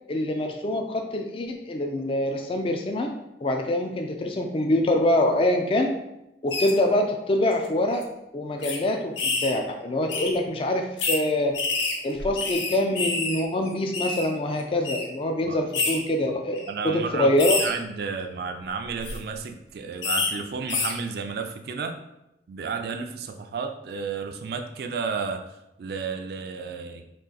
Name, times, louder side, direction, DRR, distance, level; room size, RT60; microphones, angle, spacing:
voice 1, 0.1-3.1 3.4-5.9 6.4-8.0 8.3-11.6 12.0-17.6, left 1 dB, 30° left, 3 dB, 0.3 m, -25 dB
sound 1, 6.5-6.7 7.5-7.7 7.9-8.0 8.6-8.8 9.2-9.6 10.1-10.3 11.0-11.2 11.5-13.4 13.7-14.3 14.8-15.0 15.7-16.0 16.5-16.7 17.4-17.7 18.9-19.2 20.0-20.3 20.7-20.9, left 3 dB, 90° left, 0.6 m, -27 dB
voice 2, 16.7-17.3 17.6-22.0 22.5-25.4 25.8-27.1, right 5 dB, 60° right, 5 dB, 0.3 m, -32 dB
3.7 x 2.4 x 3.9 m, 0.89 s
head